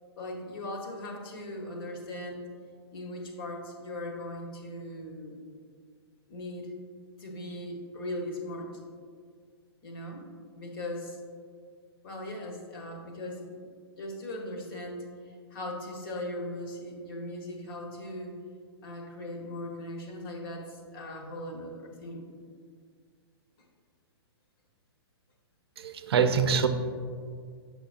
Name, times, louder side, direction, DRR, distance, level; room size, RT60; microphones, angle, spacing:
voice 1, 0.2-2.5 2.9-5.4 6.3-6.7 7.2-8.8 9.8-10.3 10.5-11.2 12.0-18.4 18.8-22.2, left 1 dB, 55° left, 1 dB, 1.2 m, -39 dB
voice 2, 25.8-26.7, right 6 dB, 65° right, 9 dB, 0.5 m, -24 dB
6.6 x 5.8 x 2.5 m, 2.1 s
hypercardioid pair, 125°, 14 cm